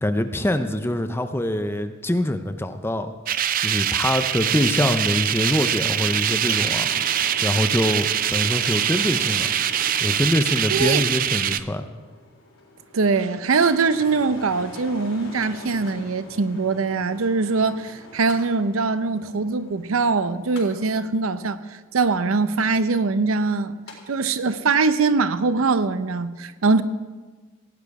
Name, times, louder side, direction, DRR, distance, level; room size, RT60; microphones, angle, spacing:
voice 1, 0.0-3.1 3.6-7.1 7.4-9.5 10.0-11.8, left 1 dB, 10° left, 0.6 m, -24 dB
sound 1, 3.3-11.6, right 10 dB, 40° right, 0.4 m, -23 dB
Mechanical fan, 4.6-24.0 24.3-24.4, left 2 dB, 90° left, 3.8 m, -43 dB
voice 2, 10.7-11.0 12.9-21.6 21.9-23.7 24.1-26.8, right 4 dB, 90° right, 0.6 m, -22 dB
17.0 x 9.2 x 4.8 m
head